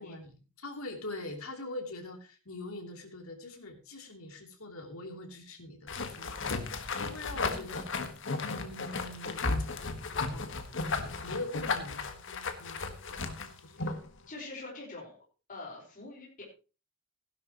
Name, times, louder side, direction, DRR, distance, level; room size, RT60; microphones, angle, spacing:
voice 1, 0.0-6.5 7.0-7.9 8.4-9.5 10.1-10.5 10.9-13.9, left 2 dB, 85° left, 3 dB, 3.1 m, -43 dB
sound 1, 5.9-14.1, left 3 dB, 60° left, 1.6 m, -35 dB
voice 2, 7.3-8.0 13.8-13.9 14.3-15.2 15.5-16.4, left 2 dB, 40° left, -2 dB, 4.7 m, -45 dB
16.0 x 11.5 x 3.0 m, 0.33 s
head